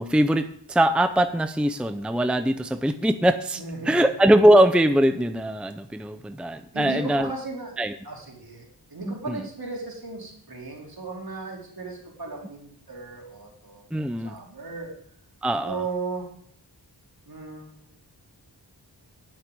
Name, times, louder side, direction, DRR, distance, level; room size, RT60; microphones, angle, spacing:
voice 1, 0.0-7.3 7.8-8.0 9.1-9.5 13.9-14.3 15.4-15.8, right 1 dB, ahead, 9 dB, 0.6 m, -22 dB
voice 2, 3.6-4.1 6.7-7.8 8.0-8.6 8.9-13.8 14.2-14.9 15.6-16.3 17.3-17.9, right 3 dB, 55° right, -1 dB, 3.6 m, -36 dB
11.5 x 6.6 x 9.2 m, 0.63 s
wide cardioid pair, 75°, 43 cm